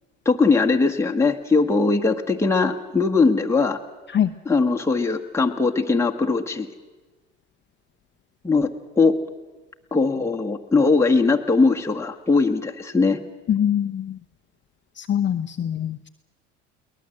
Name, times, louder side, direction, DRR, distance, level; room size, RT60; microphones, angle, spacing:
voice 1, 0.2-3.8 4.4-6.7 8.4-8.7 9.0-9.1 9.9-13.2, left 4 dB, 5° left, 2 dB, 1.5 m, -20 dB
voice 2, 13.5-14.2 15.0-16.1, left 9 dB, 30° left, 7 dB, 0.8 m, -23 dB
22.0 x 19.0 x 7.8 m, 1.3 s
hypercardioid pair, 75°, 37 cm